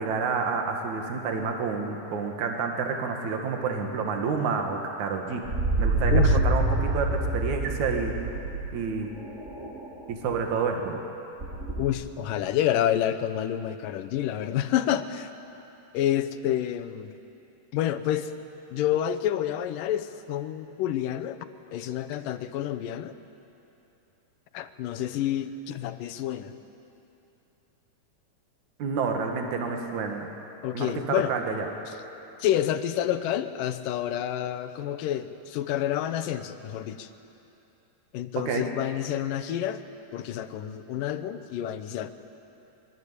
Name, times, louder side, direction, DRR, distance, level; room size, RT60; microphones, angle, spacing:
voice 1, 0.0-5.4 5.8-7.1 7.3-8.1 8.7-9.1 10.1-11.0 28.8-30.3 30.7-31.7 38.5-38.6, right 5 dB, 65° right, 3 dB, 3.1 m, -29 dB
sound 1, 5.4-8.8 9.2-10.0 10.3-10.4 11.4-11.8, right 2 dB, 25° right, 2.5 m, -26 dB
voice 2, 11.8-15.3 15.9-17.1 17.7-18.3 18.7-23.2 24.5-26.5 30.6-31.3 32.4-37.1 38.1-39.8 40.1-42.1, left 11 dB, 80° left, 11 dB, 2.5 m, -28 dB
25.0 x 22.5 x 8.2 m, 2.9 s
omnidirectional pair, 3.8 m